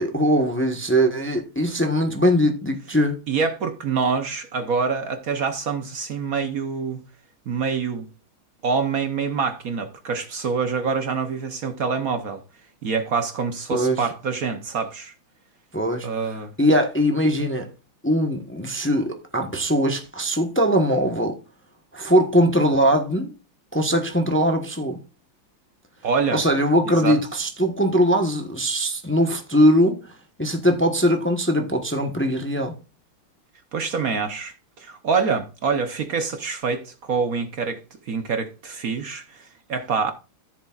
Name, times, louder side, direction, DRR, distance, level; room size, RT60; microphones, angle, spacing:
voice 1, 0.0-3.2 13.7-14.1 15.7-16.1 16.6-17.7 18.0-21.3 21.9-23.3 23.7-25.0 26.3-30.1 30.4-32.7, equal, 20° left, 0.3 m, -21 dB
voice 2, 3.3-7.0 7.5-8.1 8.6-12.4 12.8-15.1 16.0-16.5 26.0-26.4 26.8-27.2 33.7-37.8 38.1-40.1, right 5 dB, 55° right, 1.0 m, -26 dB
14.0 x 7.3 x 2.4 m
omnidirectional pair, 2.4 m